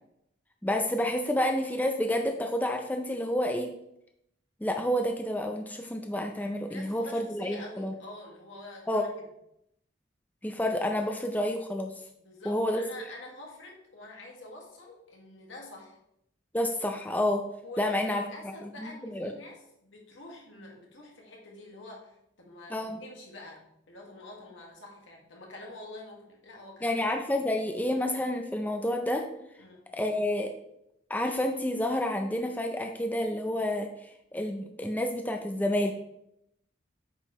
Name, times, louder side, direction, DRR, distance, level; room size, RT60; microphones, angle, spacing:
voice 1, 0.6-3.7 4.6-7.9 8.9-9.0 10.4-11.9 12.5-12.8 16.5-17.4 17.8-18.2 18.8-19.3 22.7-23.0 26.8-29.2 29.9-30.5 31.1-33.9 34.3-35.9, left 1 dB, 10° left, 4 dB, 0.5 m, -29 dB
voice 2, 6.7-9.2 12.2-16.0 17.6-27.0 29.6-29.8, left 2 dB, 80° left, -1 dB, 1.9 m, -47 dB
8.6 x 5.4 x 3.1 m, 0.78 s
head